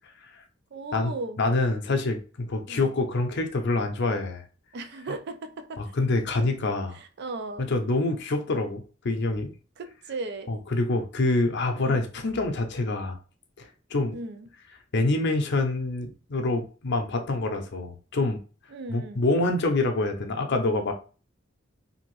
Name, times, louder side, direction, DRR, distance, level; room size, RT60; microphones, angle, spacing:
voice 1, 0.7-1.4 2.7-2.9 4.7-6.0 6.9-7.7 9.8-10.6 11.8-12.1 14.1-14.5 18.7-19.2, right 2 dB, 60° right, 0.4 m, -37 dB
voice 2, 1.4-4.4 5.8-7.0 7.6-9.5 10.5-13.2 13.6-14.2 14.9-18.4 18.9-20.9, left 2 dB, 60° left, 0.6 m, -26 dB
2.8 x 2.5 x 3.0 m
head